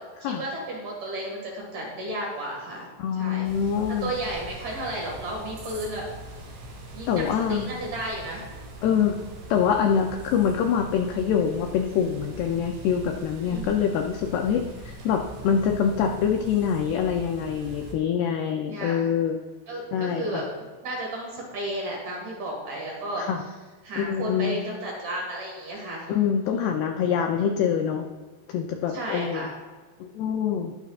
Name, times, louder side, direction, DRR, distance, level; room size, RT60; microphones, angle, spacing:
voice 1, 0.2-3.5 4.0-6.0 6.9-8.4 13.4-13.9 18.7-19.1 19.7-20.5 20.8-23.2 23.8-26.1 26.4-26.7 28.9-29.5, right 1 dB, 50° right, -2 dB, 3.0 m, -33 dB
voice 2, 3.0-4.1 7.1-7.7 8.8-9.2 9.5-19.4 19.9-20.4 23.2-23.4 24.0-24.6 26.1-28.1 28.5-29.5 30.0-30.7, left 7 dB, 85° left, 3 dB, 2.3 m, -25 dB
sound 1, 3.4-17.9, right 1 dB, 80° right, 4.6 m, -42 dB
20.5 x 7.0 x 2.5 m, 1.4 s
omnidirectional pair, 5.4 m